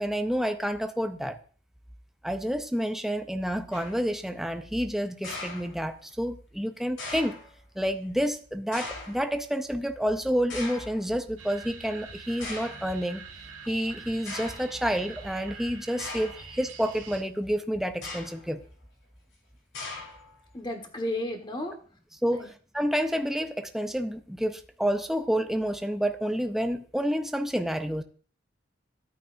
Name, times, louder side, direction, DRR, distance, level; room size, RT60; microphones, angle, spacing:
voice 1, 0.0-1.4 2.2-7.4 7.8-13.2 13.7-18.6 22.2-22.5 22.7-28.0, equal, ahead, 7 dB, 0.5 m, -29 dB
sound 1, 3.7-4.1 5.2-6.1 7.0-7.5 8.7-9.3 10.5-11.0 11.8-11.9 12.4-12.9 13.7-13.8 14.3-14.7 16.0-16.5 17.9-18.5 19.7-20.4, left 3 dB, 75° left, 4.5 m, -39 dB
sound 2, 11.4-17.2, right 5 dB, 90° right, 1.6 m, -45 dB
voice 2, 20.5-21.8 22.3-22.5, left 1 dB, 25° left, 4 dB, 1.4 m, -33 dB
14.0 x 9.2 x 2.6 m, 0.43 s
head